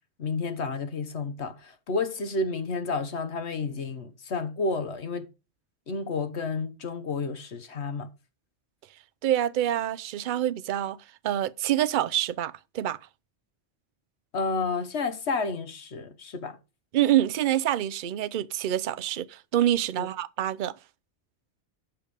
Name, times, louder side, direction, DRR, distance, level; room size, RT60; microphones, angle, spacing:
voice 1, 0.2-5.3 5.9-8.1 14.3-16.6 20.0-20.1, left 3 dB, 65° left, 1.4 m, -31 dB
voice 2, 9.2-11.0 11.2-13.0 16.9-20.7, right 12 dB, 55° right, 0.6 m, -26 dB
8.6 x 6.9 x 4.9 m
omnidirectional pair, 1.2 m